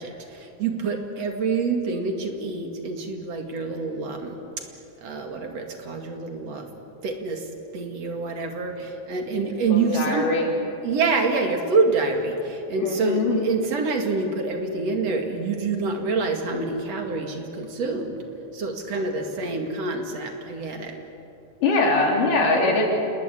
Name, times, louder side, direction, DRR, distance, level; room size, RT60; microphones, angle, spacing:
voice 1, 0.0-4.4 5.0-6.7 7.0-7.4 7.7-10.3 10.8-18.2 18.5-21.0, right 4 dB, 55° right, 3 dB, 3.2 m, -26 dB
voice 2, 9.7-10.5 12.8-13.4 21.6-22.8, left 3 dB, 90° left, 0 dB, 5.2 m, -22 dB
28.0 x 20.5 x 8.5 m, 2.7 s
omnidirectional pair, 3.6 m